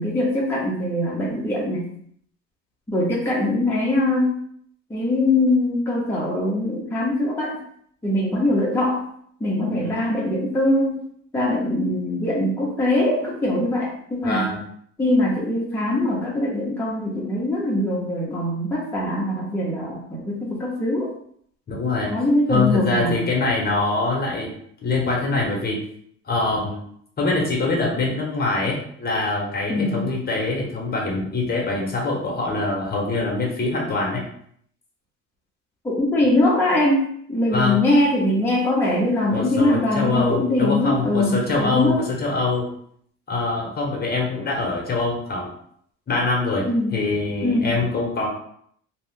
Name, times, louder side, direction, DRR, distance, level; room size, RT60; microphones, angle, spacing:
voice 1, 0.0-1.9 2.9-4.4 4.9-7.6 8.0-9.0 9.4-11.0 11.3-14.5 15.0-21.1 22.1-23.2 29.7-30.1 35.8-42.0 46.7-47.0 47.4-47.8, left 1 dB, 5° left, -6 dB, 0.7 m, -22 dB
voice 2, 14.2-14.6 21.7-22.1 22.5-24.5 24.8-25.8 26.3-26.8 27.2-34.2 37.5-37.8 39.3-42.7 43.3-45.5 46.1-46.6 46.9-48.3, left 3 dB, 30° left, -1 dB, 1.0 m, -24 dB
2.6 x 2.4 x 3.6 m, 0.65 s
cardioid pair, 115°, 31 cm